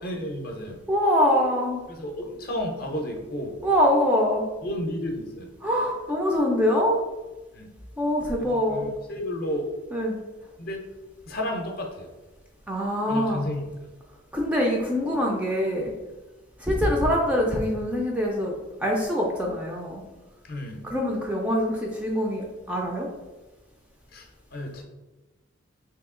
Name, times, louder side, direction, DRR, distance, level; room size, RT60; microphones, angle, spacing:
voice 1, 0.0-0.7 1.9-3.5 4.6-5.5 7.5-7.7 8.4-9.6 10.6-10.8 11.3-12.1 13.1-13.6 20.4-20.8 24.1-24.8, left 1 dB, 45° left, 1 dB, 0.5 m, -32 dB
voice 2, 0.9-1.8 3.6-4.4 5.6-7.0 8.0-8.8 9.9-10.2 12.7-13.4 14.3-15.9 16.6-20.0 20.8-23.1, equal, 5° right, -1 dB, 0.3 m, -24 dB
2.8 x 2.7 x 3.6 m, 1.2 s
head